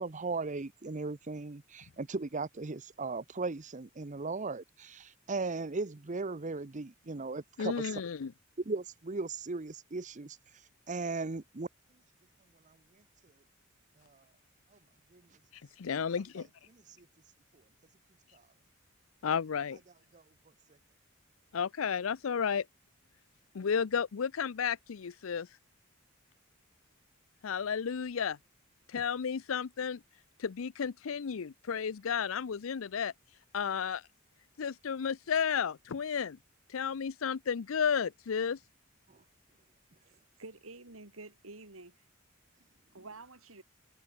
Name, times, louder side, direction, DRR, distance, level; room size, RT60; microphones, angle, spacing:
voice 1, 0.0-8.0 8.6-10.4 10.9-11.7 14.0-14.2 15.1-15.2 16.4-16.5 16.7-16.8 18.3-18.4 20.1-20.2, right 3 dB, 35° right, 0.8 m, -37 dB
voice 2, 7.6-8.3 15.8-16.5 19.2-19.8 21.5-22.6 23.6-25.5 27.4-28.4 28.9-30.0 30.4-33.1 33.5-34.0 34.6-36.4 36.7-38.6, left 7 dB, 75° left, 0.5 m, -32 dB
voice 3, 40.0-41.9 42.9-43.6, right 3 dB, 90° right, 3.3 m, -49 dB
head